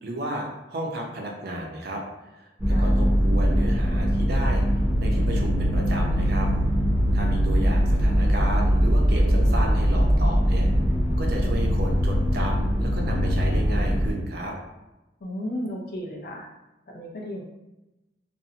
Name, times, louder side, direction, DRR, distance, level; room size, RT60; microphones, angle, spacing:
voice 1, 0.0-2.0 2.3-4.6 5.0-6.5 7.1-10.7 11.2-14.6, right 1 dB, 60° right, 0 dB, 0.5 m, -33 dB
sound 1, 2.6-14.1, equal, 10° right, 0.6 m, -21 dB
voice 2, 15.2-16.5 16.9-17.4, equal, 55° left, -1 dB, 0.5 m, -34 dB
2.5 x 2.1 x 2.7 m, 1.0 s
head